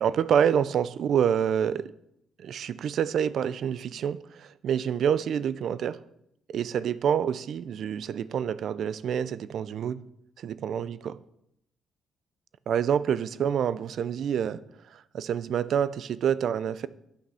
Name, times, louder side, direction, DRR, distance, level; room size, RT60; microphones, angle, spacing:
voice 1, 0.0-1.9 2.4-6.0 6.5-10.0 10.4-10.9 12.7-14.6 14.9-16.9, right 8 dB, 65° right, 17 dB, 0.4 m, -27 dB
8.5 x 6.0 x 5.6 m, 0.78 s
cardioid pair, 90°, 0 cm